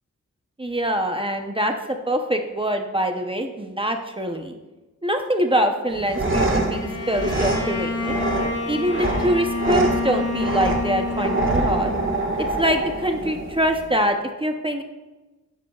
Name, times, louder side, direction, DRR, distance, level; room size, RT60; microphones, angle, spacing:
voice 1, 0.6-4.5 5.0-8.1 8.7-11.9 12.4-14.8, equal, 15° right, 4 dB, 0.7 m, -24 dB
sound 1, 5.9-13.9, right 2 dB, 40° right, 1.6 m, -26 dB
Bowed string instrument, 6.7-12.4, left 3 dB, 50° left, 2.0 m, -29 dB
12.5 x 10.5 x 2.4 m, 1.1 s
wide cardioid pair, 105°, 30 cm